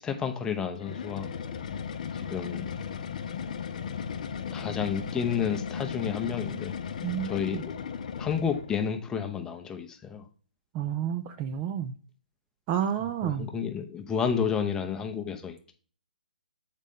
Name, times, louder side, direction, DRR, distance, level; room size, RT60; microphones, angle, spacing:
voice 1, 0.0-1.4 2.1-2.7 4.5-6.8 7.2-7.8 8.2-10.2 13.2-15.7, left 7 dB, 10° left, 6 dB, 0.6 m, -31 dB
sound 1, 0.8-8.8, left 7 dB, 50° left, 0.6 m, -36 dB
voice 2, 7.0-7.6 10.7-11.9 12.7-13.5, right 9 dB, 25° right, 9 dB, 0.4 m, -30 dB
7.2 x 4.1 x 3.5 m, 0.41 s
figure-of-eight pair, 135°, 5 cm